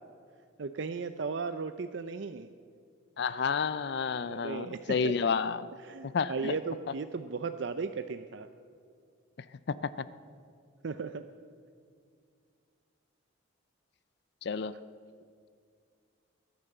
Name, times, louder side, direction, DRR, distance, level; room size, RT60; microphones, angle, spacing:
voice 1, 0.6-2.5 4.2-5.1 5.8-8.5 10.8-11.2, right 4 dB, 65° right, 9 dB, 0.5 m, -36 dB
voice 2, 3.2-5.7 6.0-6.6 9.7-10.1 14.4-14.8, left 5 dB, 55° left, 15 dB, 0.4 m, -30 dB
21.5 x 9.6 x 6.7 m, 2.2 s
head